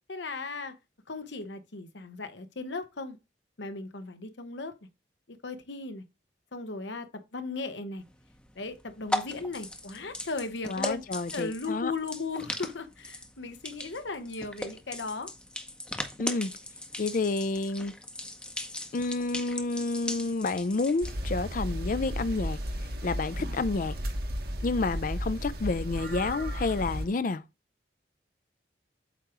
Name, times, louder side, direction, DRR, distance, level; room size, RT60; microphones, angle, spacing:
voice 1, 0.1-0.7 1.1-3.2 3.6-4.7 5.3-6.0 6.5-8.0 8.6-11.0 11.3-15.3, left 3 dB, 85° left, 1.0 m, -37 dB
sound 1, 8.0-21.2, left 1 dB, 5° left, 0.7 m, -39 dB
voice 2, 10.7-11.9 16.2-16.5 17.0-17.9 18.9-22.6 23.0-24.0 24.6-27.4, left 3 dB, 50° left, 0.5 m, -29 dB
sound 2, 21.0-27.1, equal, 60° right, 1.3 m, -34 dB
8.2 x 3.0 x 4.9 m
head